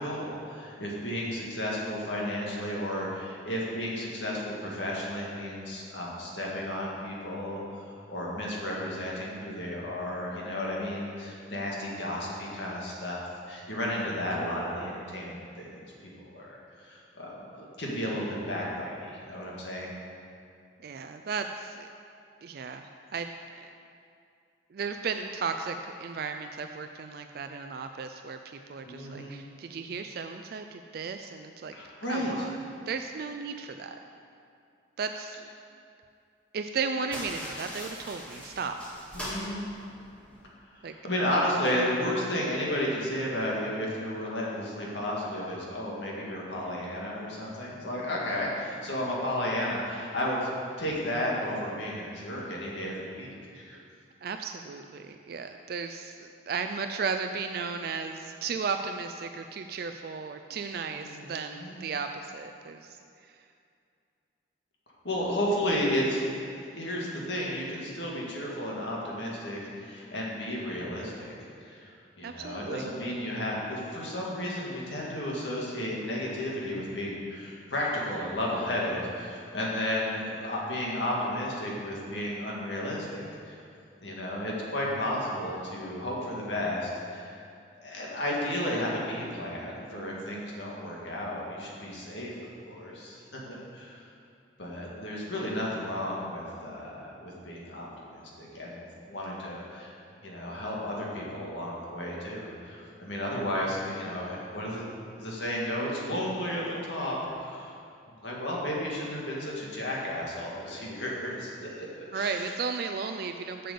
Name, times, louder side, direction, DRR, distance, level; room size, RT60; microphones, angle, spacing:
voice 1, 0.0-7.6 8.1-19.9 28.9-29.4 31.7-32.5 39.1-39.6 40.7-50.5 50.8-53.8 60.9-61.8 65.0-66.2 66.7-71.3 71.6-71.9 72.2-83.6 84.0-87.4 87.8-92.3 92.7-94.0 94.6-99.9 100.2-104.9 105.2-106.6 106.9-107.7 108.2-111.9 112.1-112.5, left 1 dB, 75° left, -4 dB, 2.0 m, -33 dB
voice 2, 20.8-21.9 22.4-23.3 23.6-23.7 24.7-31.7 32.1-32.6 32.9-34.0 35.0-35.5 36.5-38.8 40.8-40.9 54.2-63.4 72.2-72.9 112.1-113.7, right 5 dB, 55° right, 6 dB, 0.4 m, -35 dB
sound 1, 37.1-40.5, equal, 5° left, 1.8 m, -41 dB
7.6 x 6.7 x 6.9 m, 2.4 s
head